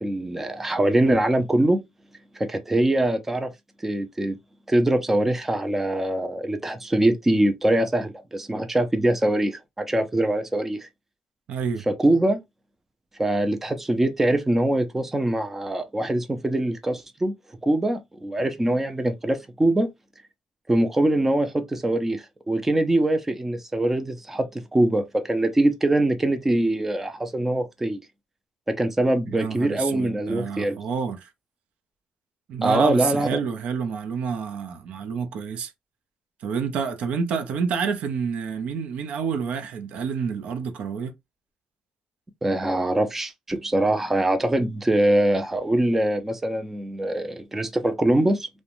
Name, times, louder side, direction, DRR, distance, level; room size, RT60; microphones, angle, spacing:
voice 1, 0.0-1.8 2.3-3.5 3.8-4.4 4.7-10.9 11.9-12.4 13.2-17.3 17.6-19.9 20.7-28.0 28.7-30.8 32.6-33.4 42.4-48.5, right 1 dB, 15° right, 0.4 m, -23 dB
voice 2, 11.5-11.8 29.3-31.3 32.5-35.7 36.4-41.1, right 6 dB, 75° right, 0.6 m, -28 dB
2.5 x 2.1 x 2.9 m
cardioid pair, 110°, 2 cm